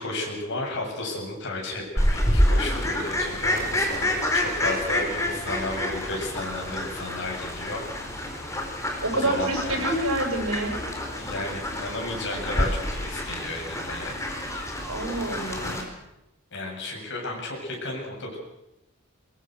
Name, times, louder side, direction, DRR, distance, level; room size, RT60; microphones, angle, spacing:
voice 1, 0.0-7.8 9.1-9.8 11.2-14.1 16.5-18.4, left 2 dB, 60° left, 0 dB, 7.7 m, -33 dB
Fowl, 2.0-15.8, left 1 dB, 15° left, 4.4 m, -28 dB
voice 2, 9.0-10.8 14.9-15.9, right 1 dB, 85° right, 2 dB, 7.7 m, -27 dB
22.5 x 22.0 x 6.5 m, 0.91 s
head